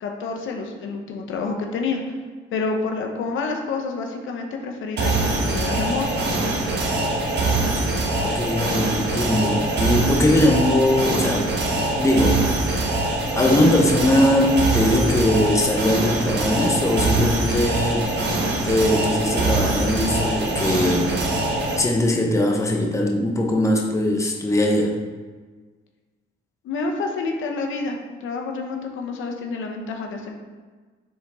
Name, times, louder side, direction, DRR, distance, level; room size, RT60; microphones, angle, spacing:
voice 1, 0.0-2.1 2.5-6.2 26.6-30.3, left 4 dB, 80° left, 2 dB, 0.9 m, -28 dB
sound 1, 5.0-21.8, right 2 dB, 60° right, 1.2 m, -23 dB
voice 2, 8.2-11.5 12.0-12.4 13.4-18.1 18.6-21.1 21.8-25.0, left 1 dB, 15° left, 1 dB, 0.9 m, -20 dB
7.0 x 3.9 x 3.6 m, 1.4 s
cardioid pair, 90°, 20 cm